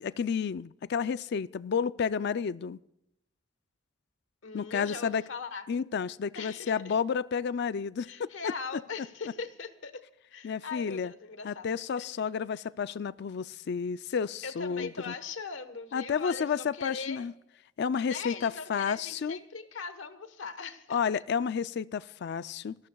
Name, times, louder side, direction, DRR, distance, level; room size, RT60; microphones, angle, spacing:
voice 1, 0.0-2.8 4.5-5.2 5.7-8.5 10.4-11.1 11.4-15.1 15.9-17.3 17.8-19.4 20.9-22.8, left 6 dB, 60° left, 0.4 m, -31 dB
voice 2, 4.4-5.6 6.3-6.9 8.0-10.0 10.3-11.7 12.0-12.1 12.5-12.6 14.4-17.3 18.0-21.0, left 5 dB, 80° left, 1.2 m, -40 dB
26.5 x 13.5 x 2.3 m
head